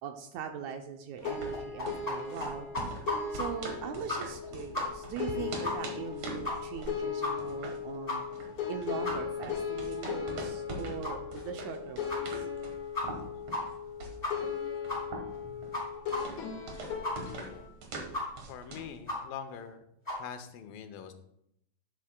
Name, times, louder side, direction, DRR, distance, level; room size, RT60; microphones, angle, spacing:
voice 1, 0.0-2.7 3.3-8.2 8.7-12.5 13.5-13.6, right 8 dB, 90° right, 5 dB, 1.6 m, -41 dB
sound 1, 1.2-17.7, left 7 dB, 65° left, 2.7 m, -38 dB
sound 2, 1.2-2.1 2.4-2.5 2.7-3.5 3.7-3.8 4.1-4.5 4.7-4.8 5.2-5.3 5.6-5.7 6.0-6.1 6.4-6.8 7.2-7.3 7.6-7.7 8.1-8.2 8.6-8.7 9.0-9.1 9.5-9.6 10.0-10.1 10.5-10.6 11.0-11.1 11.6-11.7 12.1-12.2 12.6-12.7 12.9-13.2 13.5-13.6 13.9-14.0 14.2-14.6 14.9-15.0 15.3-15.4 15.7-15.8 16.1-16.2 16.5-16.6 17.0-17.1 17.5-17.6 18.1-18.2 18.5-18.6 19.1-19.2 19.5-19.6 20.0-20.2, left 2 dB, 10° left, 3.1 m, -34 dB
sound 3, 1.2-19.0, right 2 dB, 55° right, 2.0 m, -44 dB
voice 2, 18.5-19.8 20.2-21.1, left 8 dB, 85° left, 8 dB, 2.5 m, -43 dB
11.5 x 8.5 x 2.2 m, 0.76 s
omnidirectional pair, 4.0 m